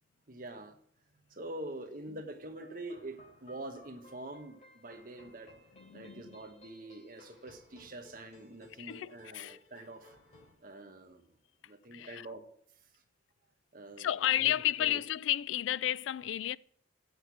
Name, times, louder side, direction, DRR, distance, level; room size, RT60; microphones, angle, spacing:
voice 1, 0.3-0.8 1.3-5.5 5.9-10.2 10.6-11.2 11.7-12.5 13.7-14.3 14.8-15.0, right 1 dB, 45° right, 1.1 m, -45 dB
sound 1, 2.5-10.5, left 1 dB, 35° left, 3.4 m, -59 dB
voice 2, 5.7-6.4 8.8-9.6 11.9-12.3 14.0-16.6, left 12 dB, 80° left, 0.3 m, -32 dB
7.9 x 6.6 x 8.1 m
head